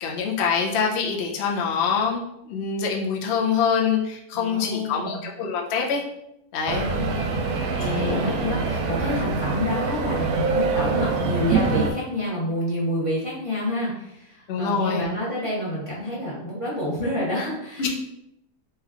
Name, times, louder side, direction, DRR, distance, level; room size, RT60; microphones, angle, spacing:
voice 1, 0.0-6.0 6.5-6.9 7.8-8.3 14.5-15.0 17.8-17.9, left 6 dB, 55° left, 0 dB, 0.8 m, -25 dB
voice 2, 4.3-5.2 6.7-7.3 7.9-17.9, left 1 dB, 25° left, -6 dB, 1.0 m, -28 dB
sound 1, 6.7-11.9, right 4 dB, 85° right, 1.1 m, -25 dB
3.3 x 3.0 x 3.6 m, 0.83 s
omnidirectional pair, 1.6 m